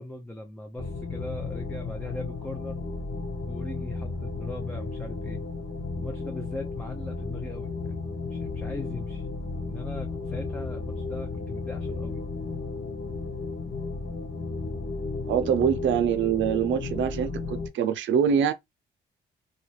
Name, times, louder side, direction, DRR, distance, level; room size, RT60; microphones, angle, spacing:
voice 1, 0.0-2.9 3.5-5.4 5.9-9.3 9.7-12.2, left 1 dB, 5° left, 0.6 m, -40 dB
sound 1, 0.8-17.7, left 3 dB, 65° left, 1.5 m, -34 dB
voice 2, 15.3-18.5, right 8 dB, 70° right, 0.6 m, -24 dB
2.9 x 2.4 x 3.2 m
cardioid pair, 90°, 20 cm